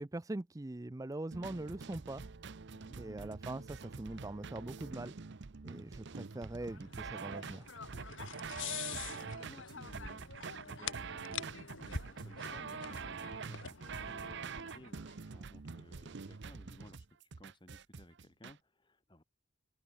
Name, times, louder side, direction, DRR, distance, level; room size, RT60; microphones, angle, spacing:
voice 1, 0.0-2.2 3.0-5.1 5.6-7.7, right 2 dB, 15° right, 0.5 m, -42 dB
sound 1, 1.3-18.5, right 5 dB, 55° right, 0.7 m, -45 dB
sound 2, 6.6-15.1, left 7 dB, 65° left, 1.7 m, -46 dB
voice 2, 8.6-19.2, left 1 dB, 20° left, 2.0 m, -58 dB
head